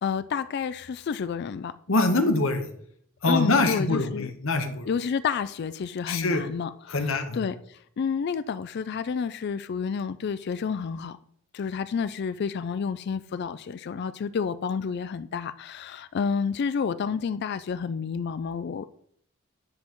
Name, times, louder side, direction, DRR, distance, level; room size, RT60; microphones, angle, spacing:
voice 1, 0.0-1.7 3.2-4.3 4.9-11.2 11.5-18.9, left 6 dB, 50° left, 0.3 m, -30 dB
voice 2, 1.9-2.6 3.2-4.9 6.1-6.4 6.9-7.4, left 2 dB, 70° left, 1.1 m, -24 dB
10.5 x 7.6 x 3.0 m
head